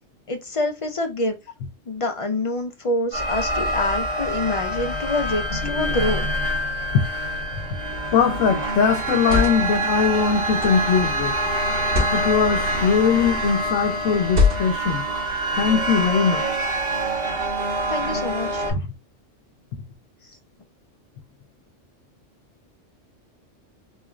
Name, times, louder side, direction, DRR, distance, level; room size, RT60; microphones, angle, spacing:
voice 1, 0.3-1.4 1.9-6.3 17.9-18.6, left 2 dB, 45° left, 0.4 m, -26 dB
sound 1, 3.1-18.7, right 1 dB, 80° right, 2.0 m, -26 dB
sound 2, 5.1-5.3 7.9-13.3, right 3 dB, 25° right, 1.2 m, -37 dB
voice 2, 5.6-5.9 6.9-7.0 8.1-11.4 12.1-15.0 15.6-16.4 18.7-18.8, left 6 dB, 85° left, 1.1 m, -21 dB
sound 3, 7.9-8.2 9.0-9.8 10.6-10.9 11.8-12.2 13.1-13.5 14.3-14.9, left 4 dB, 65° right, 2.2 m, -24 dB
4.1 x 2.5 x 3.0 m
omnidirectional pair, 1.3 m